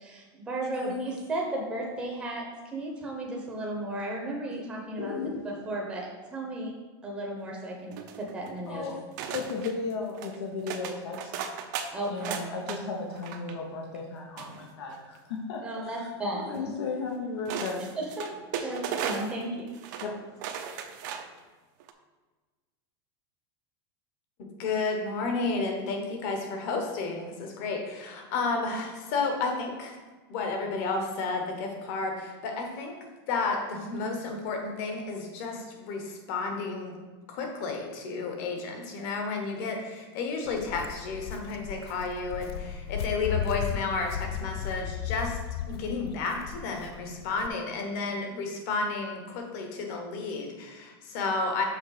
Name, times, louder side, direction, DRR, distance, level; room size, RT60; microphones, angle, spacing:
voice 1, 0.0-5.1 5.4-6.7 7.0-8.9 11.9-12.3 15.6-16.7 17.9-18.3 18.6-19.7, right 1 dB, 5° right, -2 dB, 0.8 m, -34 dB
voice 2, 5.0-5.5 8.7-9.0 9.3-11.3 11.7-16.1 16.5-17.9 20.0-20.1, left 4 dB, 85° left, 0 dB, 1.0 m, -35 dB
sound 1, 7.9-8.6 9.2-9.7 10.1-10.4 10.7-12.8 13.1-13.5 14.4-15.2 16.5-16.6 17.5-19.4 19.7-20.1 20.4-21.4 21.8-21.9, right 7 dB, 45° right, 0.6 m, -36 dB
voice 3, 24.4-30.0 30.3-33.0 33.3-37.0 37.3-45.4 45.7-51.6, left 3 dB, 40° left, 3 dB, 1.2 m, -32 dB
Walk footsteps, 40.4-47.5, left 9 dB, 70° left, 0.4 m, -35 dB
6.5 x 4.3 x 4.9 m, 1.3 s
supercardioid pair, 175°, 13 cm